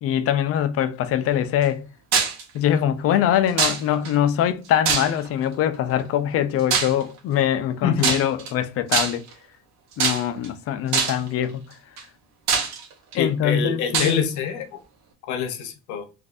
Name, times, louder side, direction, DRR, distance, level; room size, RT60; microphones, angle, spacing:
voice 1, 0.0-1.8 2.5-9.3 10.0-11.6 13.1-14.2, left 10 dB, 50° left, 0.5 m, -23 dB
sound 1, 2.1-2.4 3.6-4.1 4.8-5.4 6.7-7.0 8.0-8.5 8.9-9.3 10.0-10.5 10.9-11.3 12.0-12.1 12.5-13.1 13.9-14.2, right 6 dB, 65° right, 1.2 m, -22 dB
voice 2, 7.8-8.2 13.2-14.8 15.3-16.1, left 7 dB, 75° left, 0.9 m, -25 dB
4.1 x 2.6 x 2.4 m
cardioid pair, 145°, 29 cm